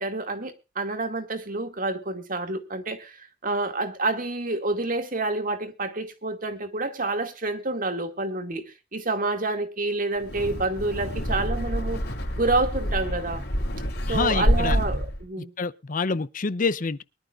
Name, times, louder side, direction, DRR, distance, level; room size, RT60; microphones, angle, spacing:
voice 1, 0.0-8.6 8.9-12.0 12.4-13.4 14.1-15.5, right 2 dB, 45° right, 2.2 m, -28 dB
Wind, 10.2-15.2, equal, 60° left, 3.6 m, -27 dB
voice 2, 14.1-14.8 15.4-17.0, left 4 dB, 45° left, 0.6 m, -27 dB
23.0 x 11.5 x 2.4 m
head